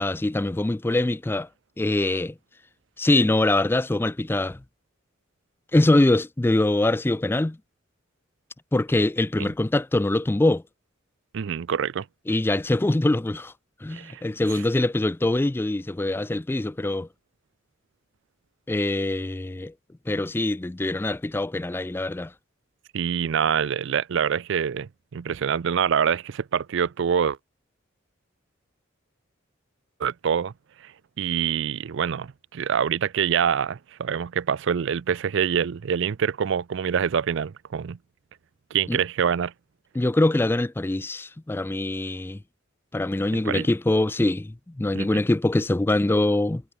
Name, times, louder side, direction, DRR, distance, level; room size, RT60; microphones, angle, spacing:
voice 1, 0.0-1.5 1.8-2.3 3.0-4.6 5.7-7.6 8.7-10.6 12.3-13.5 13.8-17.1 18.7-19.7 20.1-22.3 38.9-39.0 39.9-42.4 42.9-46.6, left 2 dB, 10° left, 0.3 m, -23 dB
voice 2, 11.3-12.1 13.9-14.2 22.9-27.4 30.0-30.5 31.2-38.0 38.7-39.5 43.3-43.7 45.0-45.2, right 7 dB, 65° right, 0.4 m, -25 dB
head